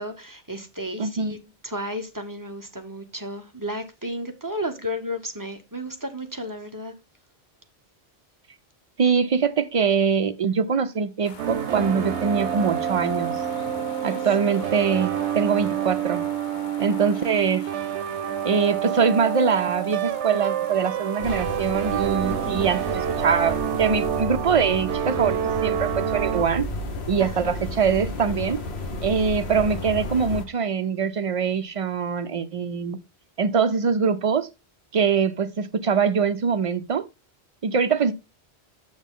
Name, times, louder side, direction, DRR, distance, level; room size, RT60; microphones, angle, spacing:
voice 1, 0.0-1.4 1.6-6.9 14.0-14.2 27.2-27.3, equal, 20° right, 0.8 m, -33 dB
voice 2, 1.0-1.3 9.0-13.4 14.0-16.2 16.8-17.7 18.4-26.7 27.1-28.6 29.0-33.0 33.4-34.5 34.9-37.1 37.6-38.1, right 6 dB, 55° right, 0.4 m, -23 dB
sound 1, 11.2-24.2, left 5 dB, 50° left, 0.9 m, -44 dB
sound 2, 11.4-26.5, right 10 dB, 85° right, 0.9 m, -28 dB
sound 3, 21.2-30.5, left 2 dB, 70° left, 1.4 m, -32 dB
7.1 x 6.3 x 3.6 m
omnidirectional pair, 1.1 m